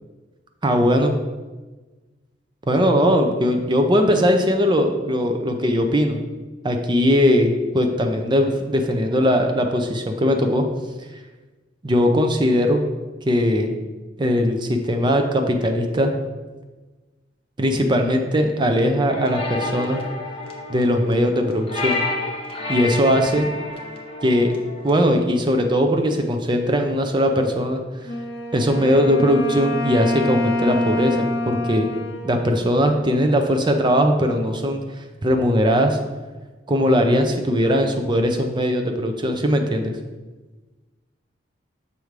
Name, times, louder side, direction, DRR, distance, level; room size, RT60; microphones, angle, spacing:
voice 1, 0.6-1.1 2.7-6.2 6.6-10.6 11.8-12.8 13.3-13.7 14.2-16.1 17.6-20.0 20.7-22.0 22.7-23.5 24.2-24.5 24.8-27.8 28.5-31.9 32.2-34.8 35.2-36.0 36.7-39.9, equal, 25° right, 4 dB, 0.5 m, -19 dB
sound 1, 19.1-25.1, left 2 dB, 30° left, 0.9 m, -30 dB
Wind instrument woodwind instrument, 28.1-33.5, left 2 dB, 65° left, 0.7 m, -27 dB
6.8 x 3.2 x 5.1 m, 1.2 s
head